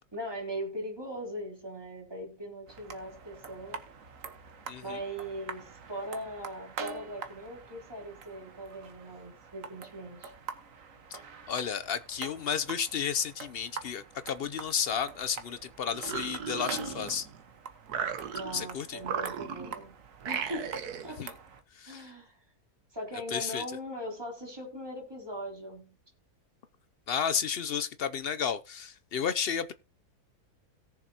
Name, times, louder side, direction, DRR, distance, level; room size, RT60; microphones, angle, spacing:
voice 1, 0.1-3.8 4.8-10.3 18.3-19.9 20.2-20.7 21.0-21.2 21.9-22.4 22.9-25.9, equal, 15° right, 3.3 m, -40 dB
sound 1, 2.7-21.6, right 6 dB, 60° right, 1.5 m, -46 dB
voice 2, 4.7-5.0 11.1-11.2 11.5-17.3 18.5-19.0 21.2-21.3 21.8-22.0 23.3-23.6 27.1-29.7, left 7 dB, 60° left, 0.6 m, -32 dB
sound 2, 15.9-17.4 17.9-18.7 19.0-19.8 20.2-21.1, right 7 dB, 85° right, 1.6 m, -36 dB
18.0 x 6.9 x 2.8 m
omnidirectional pair, 1.6 m